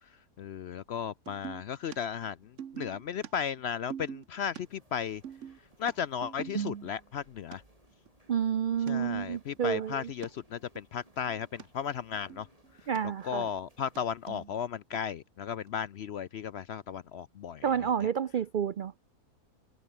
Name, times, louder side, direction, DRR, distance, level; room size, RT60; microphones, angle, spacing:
voice 1, 0.4-5.2 5.8-7.6 8.9-12.5 13.2-18.1, left 8 dB, 60° left, 0.7 m, -35 dB
sound 1, 1.3-1.6 1.9-2.0 2.2-4.6 4.9-7.2 7.5-7.6 8.1-8.2 8.5-8.6 8.9-9.0 9.2-10.3 10.8-10.9 11.1-11.7 12.0-13.0 13.3-14.0 14.3-14.6 14.9-15.0 15.7-15.8, right 8 dB, 55° right, 1.3 m, -42 dB
sound 2, 4.6-14.5, right 1 dB, 25° right, 5.7 m, -65 dB
voice 2, 8.3-10.1 12.9-13.5 17.6-18.9, right 8 dB, 85° right, 0.4 m, -30 dB
omnidirectional pair, 1.6 m